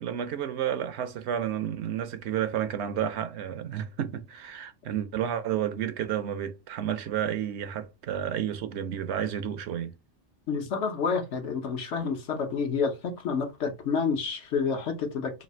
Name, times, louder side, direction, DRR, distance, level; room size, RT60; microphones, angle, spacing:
voice 1, 0.0-9.9, right 9 dB, 70° right, 0.8 m, -31 dB
voice 2, 10.5-15.4, left 5 dB, 75° left, 1.2 m, -29 dB
3.2 x 2.6 x 4.2 m
omnidirectional pair, 1.2 m